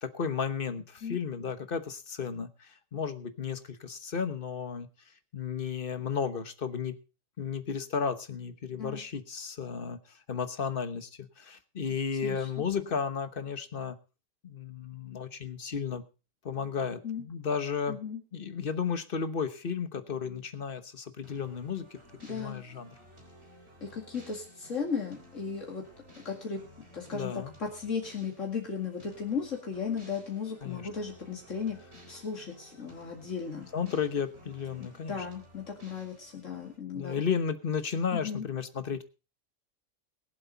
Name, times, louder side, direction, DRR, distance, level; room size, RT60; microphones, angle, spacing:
voice 1, 0.0-4.9 5.3-7.0 7.4-10.0 10.3-14.0 14.4-16.0 16.4-18.0 18.3-22.0 22.3-22.9 27.1-27.5 30.6-30.9 33.7-35.2 36.9-39.0, left 6 dB, 45° left, 11 dB, 1.3 m, -33 dB
voice 2, 12.2-12.7 17.0-17.2 17.9-18.2 22.2-22.6 23.8-25.8 26.2-26.6 26.9-27.3 27.6-31.8 32.1-33.7 34.8-37.2 38.1-38.4, left 6 dB, 75° left, 0 dB, 2.5 m, -36 dB
sound 1, 21.2-36.8, equal, 55° right, 4.2 m, -55 dB
22.0 x 7.8 x 4.0 m, 0.32 s
omnidirectional pair, 1.3 m